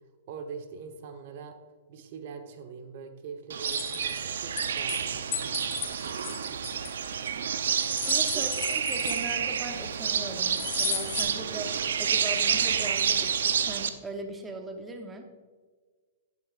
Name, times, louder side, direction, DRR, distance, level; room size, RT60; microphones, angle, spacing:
voice 1, 0.3-1.6 1.9-5.6 8.3-8.4, right 5 dB, 55° right, 6 dB, 1.1 m, -42 dB
sound 1, 3.5-13.9, right 7 dB, 80° right, 0.7 m, -29 dB
sound 2, 3.6-5.0 5.3-7.3 7.7-9.6 10.5-11.2, left 8 dB, 30° left, 2.5 m, -35 dB
voice 2, 8.0-15.2, right 2 dB, 15° right, 4 dB, 1.1 m, -39 dB
11.5 x 10.5 x 2.5 m, 1.5 s
hypercardioid pair, 130°, 0 cm